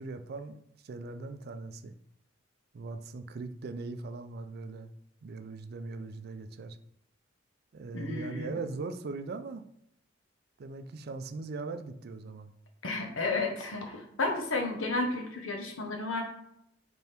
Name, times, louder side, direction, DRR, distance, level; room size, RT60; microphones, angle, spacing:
voice 1, 0.0-1.9 2.7-4.9 5.2-6.8 7.7-9.6 10.6-12.5, right 3 dB, 55° right, 9 dB, 0.4 m, -40 dB
voice 2, 7.9-8.5 12.8-16.2, left 3 dB, 90° left, 4 dB, 0.9 m, -32 dB
3.5 x 3.4 x 4.2 m, 0.77 s
head